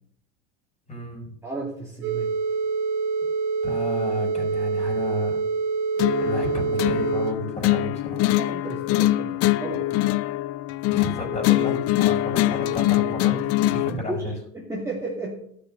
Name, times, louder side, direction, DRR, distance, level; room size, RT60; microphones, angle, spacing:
voice 1, 0.9-1.4 3.6-5.4 6.2-8.3 10.9-13.3 13.7-14.3, left 1 dB, 15° left, 2 dB, 5.2 m, -32 dB
voice 2, 1.4-2.3 8.4-9.9 13.7-15.4, right 2 dB, 5° right, -4 dB, 2.4 m, -33 dB
sound 1, 2.0-7.3, right 4 dB, 45° right, 2.2 m, -26 dB
sound 2, 6.0-14.0, left 16 dB, 35° left, 0.5 m, -23 dB
13.5 x 6.9 x 6.3 m, 0.68 s
supercardioid pair, 115°, 40 cm